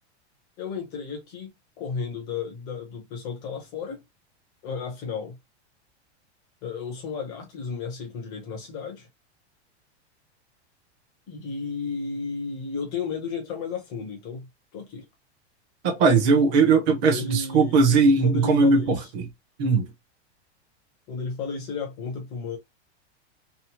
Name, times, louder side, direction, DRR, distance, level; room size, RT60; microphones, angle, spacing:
voice 1, 0.6-4.0 4.6-5.4 6.6-9.1 11.3-14.5 14.7-15.1 17.1-17.8 18.2-19.1 21.1-22.6, left 5 dB, 15° left, 0.3 m, -33 dB
voice 2, 15.8-19.2 19.6-19.9, right 4 dB, 25° right, 0.6 m, -19 dB
2.8 x 2.0 x 2.9 m
supercardioid pair, 170°, 34 cm